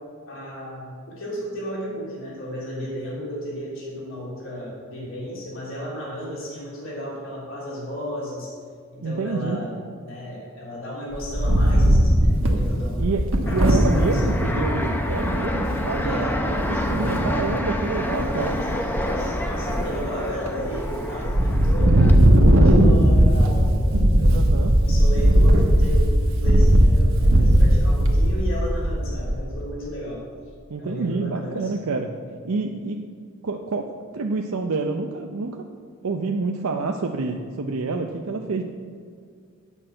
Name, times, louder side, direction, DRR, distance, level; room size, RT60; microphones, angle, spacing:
voice 1, 0.3-8.5 8.9-13.0 13.4-14.5 16.0-17.3 18.1-22.0 22.4-24.4 24.8-30.3 30.8-31.7, equal, 65° left, -5 dB, 3.2 m, -34 dB
voice 2, 9.0-9.6 13.0-13.2 13.5-18.6 24.3-24.7 25.1-25.2 30.7-32.1 32.4-33.0 33.4-33.9 34.1-35.7 36.0-38.6, right 3 dB, 85° right, 3 dB, 0.6 m, -28 dB
Wind, 11.1-14.3 14.8-14.9 15.1-15.5 16.9-17.5 18.0-18.5 18.9-20.0 20.5-20.9 21.2-29.5, right 1 dB, 65° right, 1.2 m, -17 dB
Fixed-wing aircraft airplane, 13.5-22.1, left 1 dB, 10° left, 0.6 m, -27 dB
9.0 x 6.1 x 7.6 m, 2.1 s
head